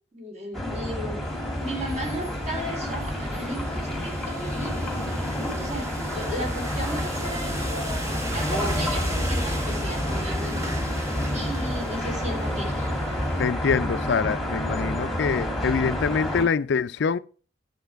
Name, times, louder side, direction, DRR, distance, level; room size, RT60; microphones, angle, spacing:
voice 1, 0.1-1.2 1.6-4.9 5.6-10.6 11.3-12.9, equal, 35° right, 3.9 m, -35 dB
sound 1, 0.5-16.4, left 1 dB, ahead, 2.0 m, -29 dB
sound 2, 1.2-13.4, equal, 15° right, 2.5 m, -34 dB
voice 2, 13.4-17.2, left 5 dB, 60° left, 0.4 m, -25 dB
10.5 x 7.8 x 4.5 m
head